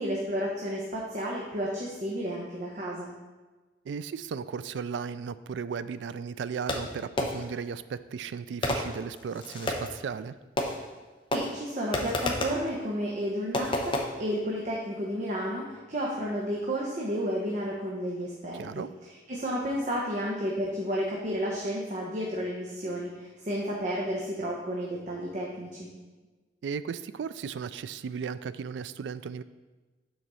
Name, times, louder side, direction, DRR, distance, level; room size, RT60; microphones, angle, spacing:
voice 1, 0.0-3.1 11.3-18.8 19.3-25.9, equal, 45° right, -3 dB, 0.9 m, -32 dB
voice 2, 3.8-10.3 18.5-18.9 26.6-29.4, right 6 dB, 80° right, 14 dB, 0.3 m, -35 dB
Fireworks, 6.7-7.6 8.6-10.0 10.6-11.0 11.3-12.7 13.5-14.0, left 1 dB, 30° left, 0.7 m, -31 dB
6.3 x 4.1 x 6.1 m, 1.2 s
head